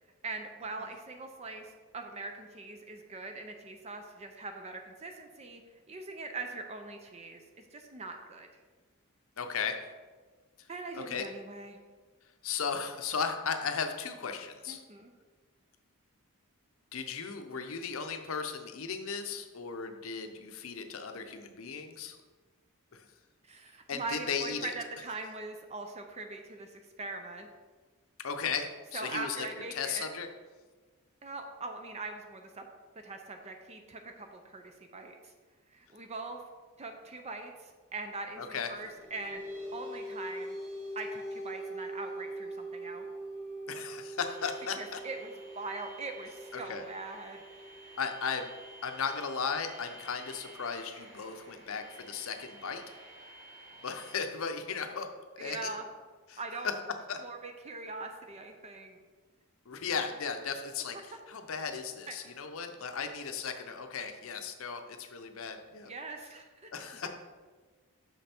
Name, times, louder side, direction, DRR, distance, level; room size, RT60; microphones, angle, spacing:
voice 1, 0.2-5.6 5.9-7.4 7.7-8.5 10.7-11.8 14.7-15.1 23.4-27.5 28.9-30.1 31.2-32.7 33.0-35.3 35.7-36.4 36.8-39.4 39.7-40.6 41.0-43.1 44.8-48.0 55.4-55.9 56.4-56.7 57.2-59.0 62.1-62.3 65.9-67.1, right 3 dB, 30° right, 5 dB, 0.5 m, -42 dB
voice 2, 9.4-9.8 10.9-11.3 12.4-14.8 16.9-22.2 22.9-23.0 23.9-24.7 28.2-30.3 38.4-38.7 43.7-45.0 46.5-46.8 48.0-48.5 48.8-53.0 53.8-55.1 55.4-55.7 56.3-56.7 57.1-57.2 59.7-65.9 66.7-67.1, left 6 dB, 65° left, 6 dB, 0.7 m, -36 dB
sound 1, 38.7-49.6, right 1 dB, 70° right, 2.2 m, -43 dB
sound 2, 44.2-54.2, right 2 dB, 50° right, 2.0 m, -53 dB
6.3 x 5.3 x 4.4 m, 1.4 s
head